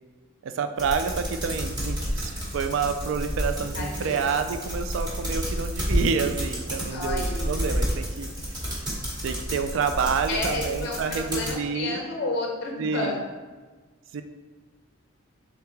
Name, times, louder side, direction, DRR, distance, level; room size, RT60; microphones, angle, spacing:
voice 1, 0.4-8.3 9.2-12.0 12.8-13.2 14.1-14.2, right 5 dB, 65° right, 8 dB, 0.3 m, -28 dB
sound 1, 0.8-11.5, equal, 20° right, 1.0 m, -30 dB
voice 2, 3.8-4.3 6.9-7.5 10.3-13.2, left 2 dB, 55° left, 0 dB, 0.5 m, -31 dB
3.7 x 3.4 x 3.0 m, 1.3 s
head